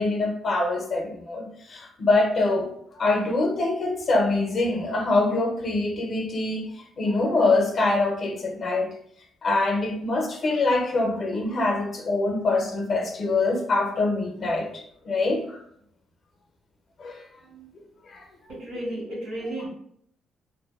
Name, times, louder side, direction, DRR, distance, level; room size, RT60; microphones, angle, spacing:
voice 1, 0.0-2.7 3.0-8.9 9.4-15.6 17.0-17.6 18.1-18.3, left 2 dB, 50° left, 3 dB, 0.5 m, -24 dB
voice 2, 18.5-19.7, right 1 dB, 85° right, -10 dB, 1.2 m, -33 dB
2.5 x 2.3 x 2.3 m, 0.69 s
cardioid pair, 90°, 0 cm